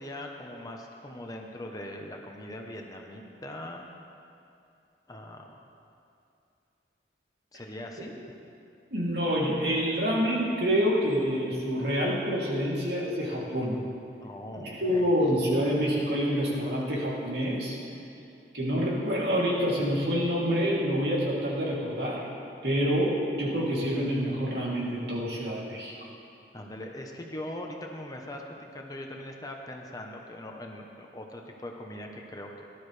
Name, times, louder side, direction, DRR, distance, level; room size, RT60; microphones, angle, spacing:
voice 1, 0.0-3.8 5.1-5.4 7.5-8.1 14.2-15.1 26.5-32.6, left 1 dB, 20° left, 1 dB, 0.9 m, -41 dB
voice 2, 8.9-13.8 14.6-17.8 18.5-22.2 22.6-25.9, equal, 65° right, -5 dB, 2.9 m, -27 dB
17.5 x 12.0 x 3.3 m, 2.6 s
head